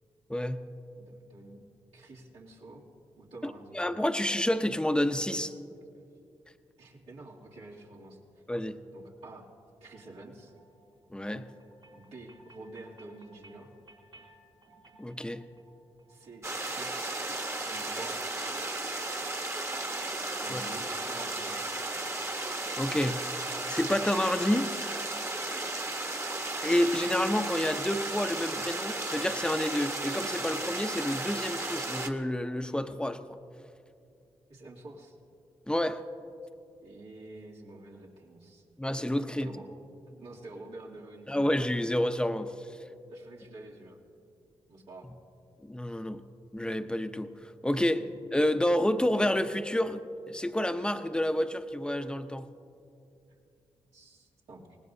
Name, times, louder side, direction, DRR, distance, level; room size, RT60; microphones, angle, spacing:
voice 1, 0.3-0.6 3.4-5.5 8.5-8.8 11.1-11.5 15.0-15.4 20.5-20.6 22.8-23.2 23.7-24.7 26.6-33.2 35.7-36.0 38.8-39.5 41.3-42.5 45.6-46.2 46.5-48.0 48.3-50.0 50.3-52.4, left 1 dB, 10° left, 9 dB, 0.8 m, -29 dB
voice 2, 1.0-1.6 1.9-2.8 3.2-3.8 6.8-8.2 8.9-9.5 9.8-10.5 11.9-13.7 16.1-17.1 17.7-18.4 20.4-21.5 34.5-35.1 36.8-38.6 39.4-39.7 40.1-41.6 43.1-44.0 44.7-45.1 47.8-48.1 53.9-54.8, right 2 dB, 85° right, -6 dB, 2.8 m, -48 dB
sound 1, 9.8-27.7, right 3 dB, 60° right, 3.2 m, -59 dB
sound 2, 16.4-32.1, right 2 dB, 25° right, 1.2 m, -34 dB
24.5 x 19.0 x 2.7 m, 2.6 s
cardioid pair, 65°, 11 cm